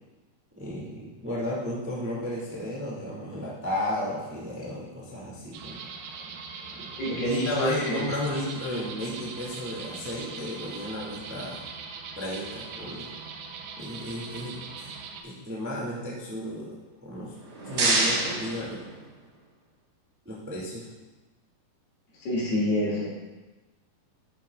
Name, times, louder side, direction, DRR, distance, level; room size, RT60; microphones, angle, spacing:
voice 1, 0.5-5.8 6.7-11.6 12.1-13.1 13.8-14.6 15.2-17.3 17.6-18.8 20.2-20.9, left 1 dB, 15° right, -6 dB, 0.4 m, -33 dB
sound 1, 5.5-15.2, right 5 dB, 75° right, 2.7 m, -41 dB
voice 2, 7.0-8.1 22.2-23.1, left 1 dB, 70° left, -5 dB, 4.4 m, -27 dB
etincelle-spark, 17.2-19.4, right 2 dB, 55° right, 1.8 m, -28 dB
11.0 x 11.0 x 2.4 m, 1.2 s
omnidirectional pair, 4.7 m